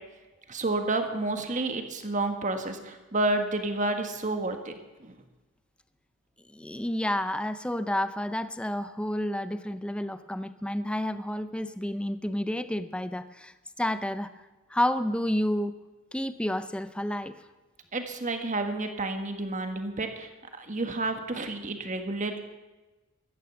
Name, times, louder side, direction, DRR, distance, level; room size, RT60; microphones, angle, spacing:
voice 1, 0.5-5.2 17.9-20.3 20.6-22.4, right 2 dB, 35° right, 6 dB, 1.5 m, -30 dB
voice 2, 6.5-14.3 14.7-15.7 16.1-17.4, left 1 dB, 5° left, 12 dB, 0.5 m, -30 dB
15.5 x 13.0 x 7.0 m, 1.1 s
head